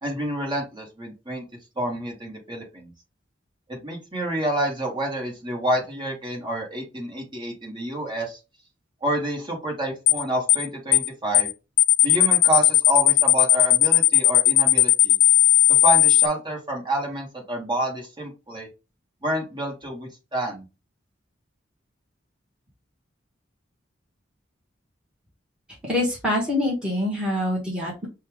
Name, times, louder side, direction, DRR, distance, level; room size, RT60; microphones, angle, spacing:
voice 1, 0.0-1.4 1.8-2.9 3.7-8.4 9.0-11.5 12.0-15.2 15.7-18.7 19.2-20.6, right 1 dB, 25° right, 0 dB, 1.6 m, -28 dB
sound 1, 10.1-10.2 10.5-10.7 10.9-11.1 11.3-11.5 11.8-16.3, left 15 dB, 55° left, 0.4 m, -16 dB
voice 2, 25.8-28.1, left 1 dB, 5° right, -5 dB, 1.6 m, -25 dB
5.3 x 2.4 x 3.5 m, 0.28 s
head